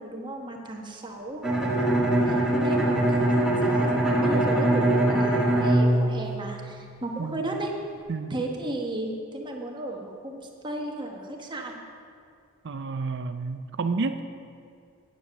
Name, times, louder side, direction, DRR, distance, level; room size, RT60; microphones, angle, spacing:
voice 1, 0.0-7.7 8.3-11.8, right 1 dB, 20° right, 1 dB, 1.2 m, -35 dB
Bowed string instrument, 1.4-7.1, right 1 dB, 5° right, 1.7 m, -23 dB
voice 2, 12.6-14.2, right 4 dB, 55° right, 9 dB, 0.5 m, -30 dB
9.9 x 9.1 x 6.4 m, 2.3 s
head